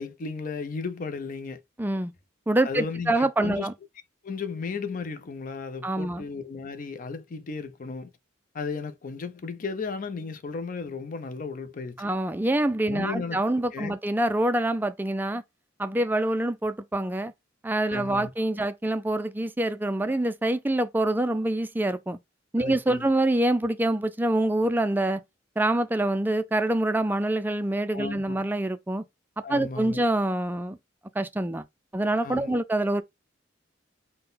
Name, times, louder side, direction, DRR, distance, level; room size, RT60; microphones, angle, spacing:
voice 1, 0.0-1.6 2.6-3.7 4.2-8.1 8.5-12.1 12.9-13.9 17.9-18.3 22.6-23.1 27.9-28.4 29.4-30.0 32.2-32.6, left 4 dB, 45° left, 0.5 m, -35 dB
voice 2, 1.8-2.1 2.5-3.7 5.8-6.2 12.0-15.4 15.8-17.3 17.6-22.2 22.5-25.2 25.6-29.0 29.5-30.8 31.2-31.6 31.9-33.0, right 1 dB, 10° right, 0.3 m, -25 dB
3.8 x 2.1 x 3.9 m
head